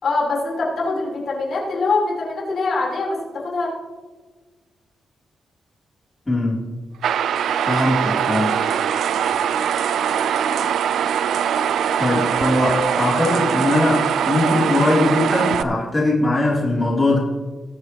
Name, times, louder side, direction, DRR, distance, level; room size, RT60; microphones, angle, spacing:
voice 1, 0.0-3.7, left 3 dB, 65° left, -3 dB, 3.7 m, -23 dB
voice 2, 6.3-6.6 7.7-8.6 12.0-17.2, left 2 dB, 25° left, -5 dB, 3.0 m, -20 dB
sound 1, 7.0-15.6, right 8 dB, 85° right, 0.4 m, -22 dB
20.0 x 7.8 x 2.9 m, 1.4 s
cardioid pair, 100°, 0 cm